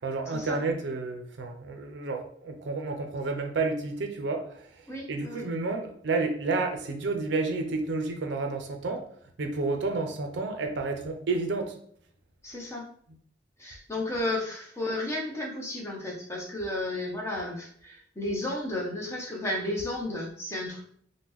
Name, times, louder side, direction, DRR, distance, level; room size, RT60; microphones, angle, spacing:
voice 1, 0.0-9.0 9.4-11.7, right 3 dB, 65° right, 4 dB, 0.5 m, -30 dB
voice 2, 4.9-5.5 12.4-12.9 13.6-20.8, left 1 dB, 15° left, -2 dB, 0.6 m, -33 dB
3.5 x 2.1 x 3.0 m, 0.62 s
head